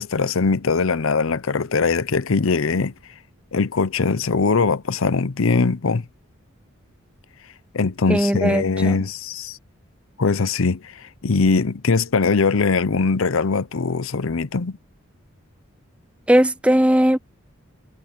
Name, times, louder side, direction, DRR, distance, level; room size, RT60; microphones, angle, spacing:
voice 1, 0.0-2.9 3.5-6.0 7.7-9.6 10.2-14.8, left 4 dB, 75° left, 0.7 m, -21 dB
voice 2, 8.1-9.0 16.3-17.2, right 1 dB, 5° right, 0.4 m, -18 dB
head